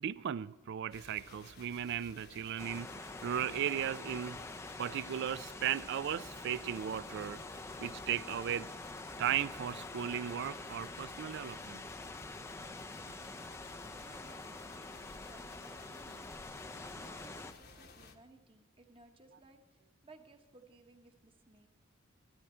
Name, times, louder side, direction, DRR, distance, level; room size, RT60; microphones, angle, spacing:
voice 1, 0.0-4.4 4.8-7.4 7.8-8.7 9.2-11.8, right 9 dB, 55° right, 0.3 m, -36 dB
sound 1, 0.9-18.2, left 4 dB, 50° left, 1.0 m, -56 dB
sound 2, 2.6-17.5, left 2 dB, 10° left, 0.4 m, -46 dB
voice 2, 13.2-21.7, right 2 dB, 25° right, 1.1 m, -61 dB
13.5 x 12.5 x 4.3 m
head